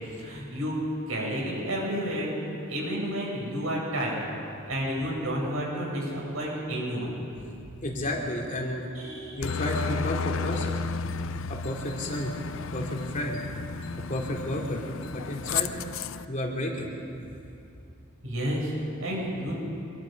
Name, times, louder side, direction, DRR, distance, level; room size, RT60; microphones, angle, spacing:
voice 1, 0.2-0.8 1.1-4.3 4.7-7.2 8.9-9.6 18.2-18.7 19.0-19.5, equal, 80° right, -3 dB, 7.6 m, -31 dB
voice 2, 7.8-8.9 9.4-10.8 11.5-12.3 12.7-13.4 14.1-14.8 15.1-15.7 16.3-16.9, left 1 dB, 35° left, -1 dB, 3.0 m, -31 dB
Aircraft, 9.4-16.2, left 5 dB, 65° left, 0.6 m, -33 dB
25.5 x 22.0 x 5.3 m, 2.6 s
head